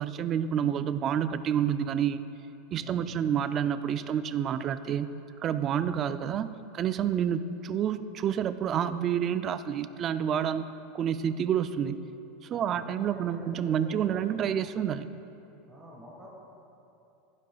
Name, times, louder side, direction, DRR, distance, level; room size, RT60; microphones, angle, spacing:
voice 1, 0.0-2.2 2.7-5.1 5.4-6.5 6.7-10.7 10.9-12.0 12.5-15.1, right 9 dB, 25° right, 12 dB, 0.3 m, -28 dB
voice 2, 2.8-3.2 12.5-14.5 15.7-16.3, equal, 10° right, -6 dB, 1.6 m, -47 dB
15.0 x 10.5 x 2.3 m, 2.8 s
supercardioid pair, 165°, 0 cm